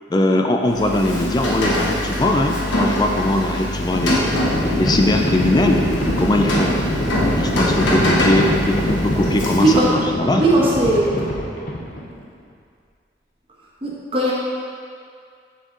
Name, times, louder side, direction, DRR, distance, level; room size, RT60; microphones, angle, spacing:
voice 1, 0.1-4.2 4.8-5.8 6.2-6.8 7.4-9.9 10.1-10.4, left 1 dB, 20° left, 3 dB, 0.3 m, -20 dB
Rain, 0.7-9.9, left 1 dB, 85° left, 1.1 m, -23 dB
Livestock farm animals working animals, 3.5-12.2, equal, 45° left, 0.9 m, -24 dB
voice 2, 9.6-10.0 10.4-11.3 13.8-14.3, right 1 dB, 30° right, -5 dB, 1.1 m, -18 dB
6.6 x 4.5 x 3.8 m, 2.2 s
head